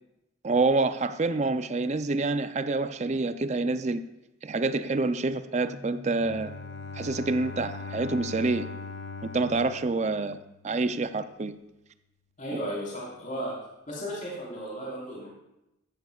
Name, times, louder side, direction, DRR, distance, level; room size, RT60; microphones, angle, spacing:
voice 1, 0.4-4.0 4.4-6.5 6.9-8.7 9.3-11.5, right 3 dB, 35° right, 11 dB, 0.5 m, -27 dB
Keyboard (musical), 5.7-8.6, left 2 dB, 10° left, 0.7 m, -50 dB
Bowed string instrument, 6.2-11.0, left 4 dB, 60° left, 0.7 m, -40 dB
voice 2, 12.4-13.6 13.9-15.3, equal, 40° left, -5 dB, 4.2 m, -35 dB
14.5 x 13.0 x 2.4 m, 0.91 s
head